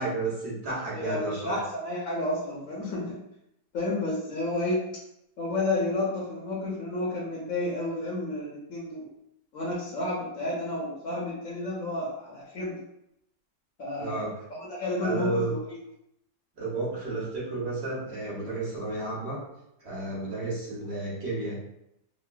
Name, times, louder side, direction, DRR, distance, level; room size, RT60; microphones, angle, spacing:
voice 1, 0.0-1.6 14.0-14.3 15.0-15.6 16.6-19.4 19.8-21.6, right 2 dB, 45° right, -6 dB, 1.0 m, -32 dB
voice 2, 0.9-3.1 3.7-4.8 5.4-9.1 9.5-12.8 13.8-14.2 14.7-15.6, left 2 dB, 65° left, -5 dB, 0.9 m, -31 dB
2.9 x 2.2 x 2.3 m, 0.81 s
omnidirectional pair, 1.8 m